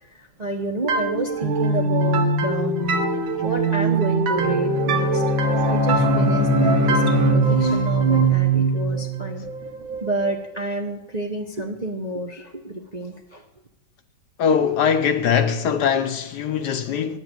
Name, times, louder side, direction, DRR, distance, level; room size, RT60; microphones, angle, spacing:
voice 1, 0.2-2.8 3.1-5.2 5.7-9.4 10.0-13.4, right 1 dB, 35° right, 0.7 m, -30 dB
sound 1, 0.9-10.4, right 4 dB, 90° right, 2.0 m, -22 dB
Bowed string instrument, 4.4-8.0, left 5 dB, 20° right, 1.6 m, -23 dB
voice 2, 14.4-17.2, left 7 dB, 65° left, 1.3 m, -21 dB
9.7 x 8.1 x 9.1 m
omnidirectional pair, 2.1 m